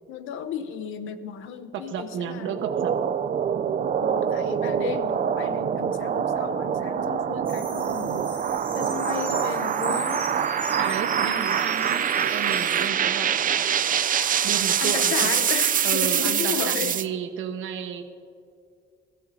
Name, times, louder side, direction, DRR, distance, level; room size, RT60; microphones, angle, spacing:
voice 1, 0.1-2.7 3.7-8.3 8.7-10.3 11.2-11.4 14.0-14.2 14.8-17.0, left 8 dB, 85° left, 11 dB, 0.8 m, -34 dB
voice 2, 1.7-2.9 10.8-13.7 14.4-15.3 15.8-18.1, right 7 dB, 80° right, 6 dB, 1.2 m, -32 dB
sound 1, 2.4-17.1, right 8 dB, 45° right, 0.5 m, -25 dB
sound 2, 7.4-12.9, right 2 dB, 10° right, 2.6 m, -38 dB
21.0 x 14.0 x 2.8 m, 2.3 s
cardioid pair, 90°, 20 cm